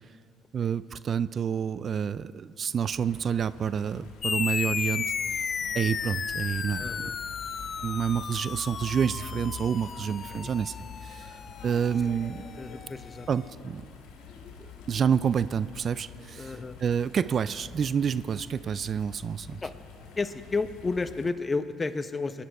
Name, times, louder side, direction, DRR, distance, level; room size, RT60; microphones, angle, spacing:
voice 1, 0.5-5.1 5.7-7.1 7.8-10.7 11.0-11.3 11.6-12.5 13.3-13.8 14.6-16.5 16.8-19.6, right 7 dB, 50° right, 16 dB, 0.4 m, -28 dB
sound 1, 2.9-21.3, left 6 dB, 70° left, 2.1 m, -46 dB
sound 2, 4.2-13.1, left 6 dB, 45° left, 0.5 m, -34 dB
voice 2, 6.8-7.1 10.3-10.5 12.6-13.3 16.4-16.8 19.6-19.7 20.2-22.4, left 3 dB, 25° left, 11 dB, 0.9 m, -31 dB
23.5 x 10.0 x 4.8 m, 2.3 s
hypercardioid pair, 60°, 0 cm